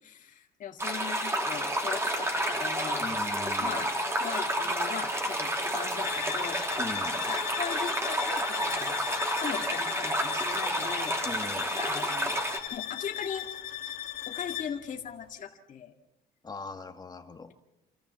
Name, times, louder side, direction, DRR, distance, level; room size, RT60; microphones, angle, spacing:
voice 1, 0.0-3.3 3.6-3.9 4.2-6.6 7.3-11.3 11.8-12.4 12.7-13.5 14.3-15.9, left 7 dB, 50° left, 2 dB, 2.1 m, -39 dB
sound 1, 0.8-12.6, right 1 dB, 15° right, 3.2 m, -30 dB
voice 2, 3.0-3.8 6.8-7.2 11.2-11.7 16.4-17.5, left 4 dB, 25° left, 6 dB, 2.1 m, -40 dB
sound 2, 6.0-14.8, left 12 dB, 65° left, 2.2 m, -38 dB
28.0 x 14.0 x 7.0 m, 0.97 s
cardioid pair, 110°, 17 cm